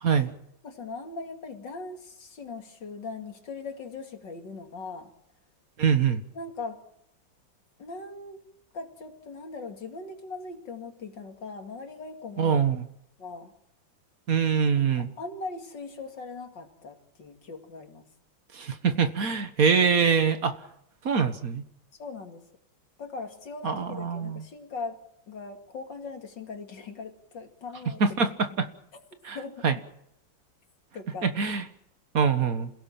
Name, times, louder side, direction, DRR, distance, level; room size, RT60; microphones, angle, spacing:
voice 1, 0.0-0.3 5.8-6.2 12.4-12.9 14.3-15.1 18.5-20.6 21.1-21.6 23.6-24.4 28.0-28.7 29.2-29.4 29.6-29.7 31.2-31.6 32.1-32.7, right 6 dB, 50° right, 9 dB, 1.8 m, -24 dB
voice 2, 0.6-5.1 6.3-6.8 7.8-8.4 8.7-12.6 13.2-13.5 15.0-18.1 22.0-22.5 23.0-25.0 25.3-28.0 29.3-29.6 30.9-31.3, left 3 dB, 65° left, 4 dB, 3.1 m, -40 dB
27.5 x 17.0 x 7.4 m, 0.77 s
omnidirectional pair, 2.1 m